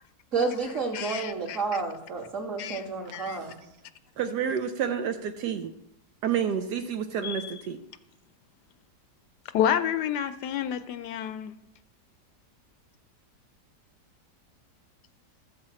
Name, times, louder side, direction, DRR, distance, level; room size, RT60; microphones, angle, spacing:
voice 1, 0.3-3.6, right 4 dB, 45° right, -4 dB, 2.8 m, -30 dB
voice 2, 0.9-1.6 2.6-2.8 3.1-3.4 7.2-7.6 9.5-11.5, left 9 dB, 75° left, 11 dB, 1.1 m, -29 dB
voice 3, 4.2-5.7 6.2-7.8, right 8 dB, 75° right, 8 dB, 1.2 m, -29 dB
13.5 x 4.8 x 7.5 m, 0.86 s
omnidirectional pair, 1.9 m